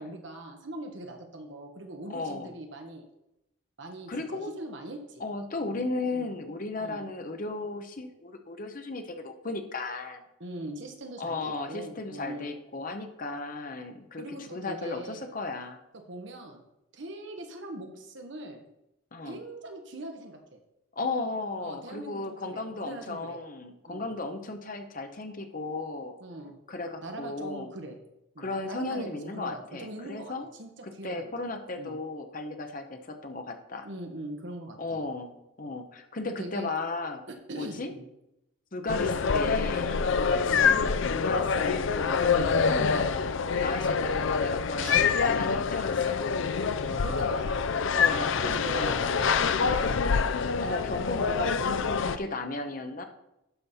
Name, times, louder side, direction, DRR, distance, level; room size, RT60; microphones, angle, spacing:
voice 1, 0.0-3.0 3.8-5.2 5.7-5.8 6.1-6.2 6.8-7.0 10.4-12.5 14.2-15.3 16.1-16.6 16.9-18.6 19.2-20.6 21.6-23.4 23.9-24.1 26.2-26.6 27.0-28.0 28.3-30.3 30.6-30.7 31.0-31.3 31.8-32.0 33.8-35.0 36.2-36.7 37.5-38.0 40.4-40.7 44.8-45.1 46.9-47.7 48.4-50.2 51.7-51.9, right 1 dB, 60° right, 4 dB, 1.2 m, -41 dB
voice 2, 2.1-2.5 4.1-4.5 5.2-10.2 11.2-15.8 19.1-19.4 21.0-26.2 26.7-27.7 28.4-30.5 30.8-33.9 34.8-37.2 37.5-37.9 38.7-43.3 43.6-46.2 47.3-47.4 47.9-48.9 50.6-53.0, left 2 dB, 40° left, 6 dB, 0.9 m, -35 dB
sound 1, 38.9-52.2, left 5 dB, 65° left, 0.4 m, -26 dB
11.5 x 5.3 x 4.2 m, 0.87 s
head